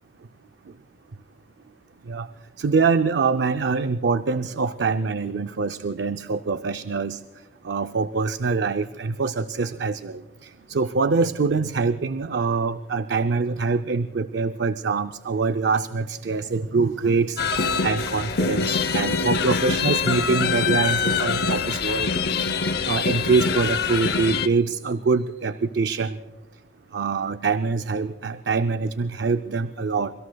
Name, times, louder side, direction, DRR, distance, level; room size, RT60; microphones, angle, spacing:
voice 1, 2.6-7.2 7.6-22.1 22.9-26.2 26.9-30.1, right 4 dB, 80° right, 10 dB, 0.5 m, -24 dB
sound 1, 17.4-24.5, left 5 dB, 60° left, 0.7 m, -24 dB
26.0 x 24.0 x 2.3 m, 1.2 s
head